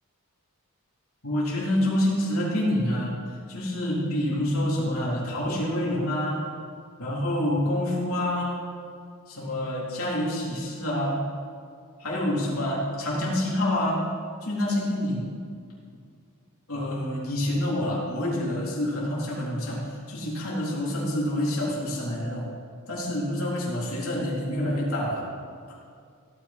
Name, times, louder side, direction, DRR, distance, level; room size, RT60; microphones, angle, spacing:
voice 1, 1.2-3.2 3.5-6.5 7.0-8.6 9.3-11.3 12.0-14.0 14.4-15.3 16.7-22.5 22.9-25.2 25.7-25.8, left 1 dB, 70° left, -5 dB, 3.6 m, -27 dB
16.0 x 9.5 x 4.4 m, 2.3 s
head